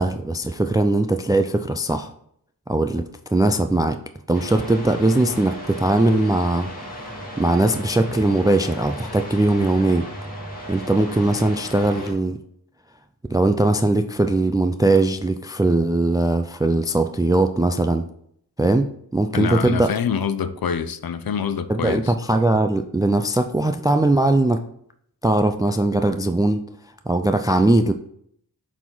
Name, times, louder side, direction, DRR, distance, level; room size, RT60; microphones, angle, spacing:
voice 1, 0.0-2.1 2.7-4.0 4.3-10.1 10.7-12.4 13.3-18.0 18.6-19.9 21.7-24.6 25.2-26.7 27.1-27.9, right 2 dB, 10° right, 0.3 m, -20 dB
sound 1, 4.3-12.1, equal, 20° left, 2.0 m, -36 dB
voice 2, 19.3-22.1, left 7 dB, 65° left, 0.6 m, -25 dB
7.2 x 4.1 x 3.9 m
wide cardioid pair, 95°, 39 cm